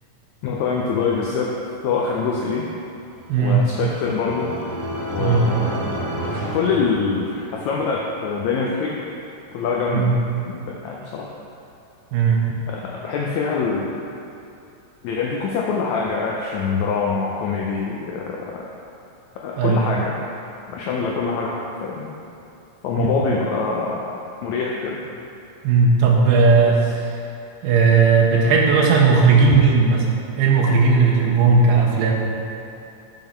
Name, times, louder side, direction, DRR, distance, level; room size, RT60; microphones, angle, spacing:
voice 1, 0.4-1.6 1.8-2.7 3.4-4.5 5.1-9.0 9.5-10.1 10.5-11.3 12.7-14.0 15.0-18.6 19.4-20.2 20.7-22.2 22.8-25.0 26.6-26.7, left 5 dB, 85° left, -2 dB, 1.6 m, -24 dB
sound 1, 3.1-7.6, right 1 dB, 70° right, 1.8 m, -30 dB
voice 2, 3.3-3.7 5.2-5.5 9.9-10.2 12.1-12.4 19.6-19.8 23.0-23.1 25.6-27.1 27.6-30.1 30.4-32.1, right 4 dB, 85° right, -2 dB, 2.5 m, -16 dB
7.4 x 5.5 x 4.5 m, 2.7 s
omnidirectional pair, 3.9 m